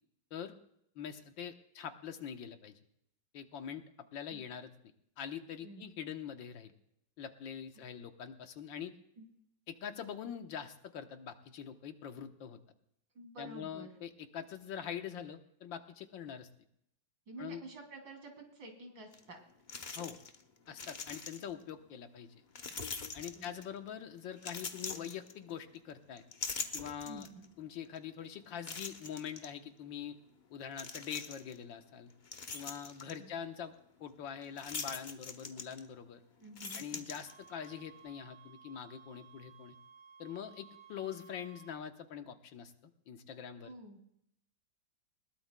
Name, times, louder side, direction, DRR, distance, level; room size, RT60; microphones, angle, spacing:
voice 1, 1.0-2.8 3.3-3.8 4.1-4.7 5.2-6.7 7.2-8.9 9.7-12.6 13.4-16.5 17.4-17.6 20.0-20.2 20.7-22.4 23.1-26.2 26.7-27.3 27.6-30.2 30.5-32.1 32.5-33.7 34.0-36.2 36.7-39.8 40.2-42.7 43.1-43.7, left 8 dB, 85° left, 7 dB, 1.8 m, -44 dB
voice 2, 13.1-13.9 17.3-19.4 23.3-23.4 23.7-23.8 27.0-27.5 33.2-33.3 36.4-37.0 43.6-44.0, right 2 dB, 80° right, 3 dB, 3.6 m, -50 dB
sound 1, 19.1-19.2 19.7-20.4 20.7-21.6 22.6-23.8 24.4-25.8 26.2-27.5 28.0-28.1 28.6-29.5 30.7-31.6 32.0-33.2 34.6-36.1 36.4-37.7, left 4 dB, 50° left, 0.5 m, -43 dB
sound 2, 37.3-41.8, right 8 dB, 40° right, 1.3 m, -58 dB
21.0 x 19.0 x 2.2 m, 0.74 s
omnidirectional pair, 2.0 m